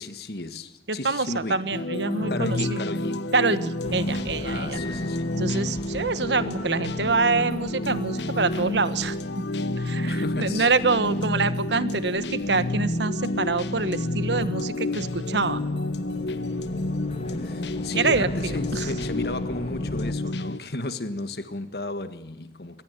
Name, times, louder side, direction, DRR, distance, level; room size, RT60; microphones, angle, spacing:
voice 1, 0.0-1.6 2.3-3.3 4.4-5.4 10.1-10.9 17.3-22.8, left 2 dB, 70° left, 1.7 m, -34 dB
voice 2, 0.9-2.8 3.3-4.8 5.4-9.4 9.8-15.6 17.9-18.9, right 3 dB, 85° right, 1.4 m, -26 dB
sound 1, 1.7-20.6, left 1 dB, 85° left, 1.1 m, -29 dB
sound 2, 3.8-20.1, left 1 dB, 35° left, 1.6 m, -40 dB
Piano, 4.7-6.2, left 6 dB, 15° left, 5.6 m, -45 dB
25.0 x 19.5 x 8.2 m
head